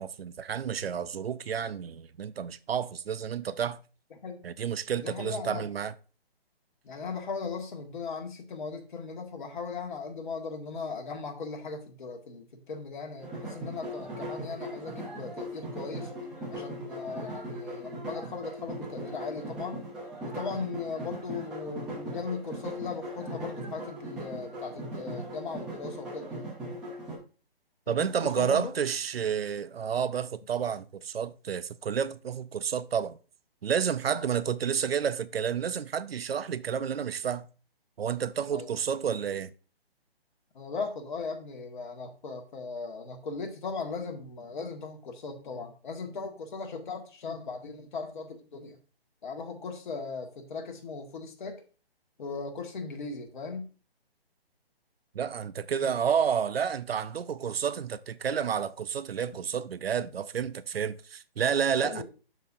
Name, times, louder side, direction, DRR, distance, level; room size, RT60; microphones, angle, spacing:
voice 1, 0.0-3.8 4.4-5.9 27.9-33.2 33.6-37.5 38.0-39.5 55.1-62.0, right 7 dB, 70° right, 0.6 m, -30 dB
voice 2, 4.1-4.5 5.0-5.7 6.8-16.1 16.5-19.8 20.2-26.5 27.9-28.7 34.1-34.3 38.5-38.7 40.5-48.8 49.2-51.6 52.2-53.7 61.8-62.0, left 4 dB, 50° left, 1.7 m, -38 dB
sound 1, 13.2-27.2, right 1 dB, ahead, 0.4 m, -39 dB
12.0 x 4.3 x 2.6 m
figure-of-eight pair, 145°, 31 cm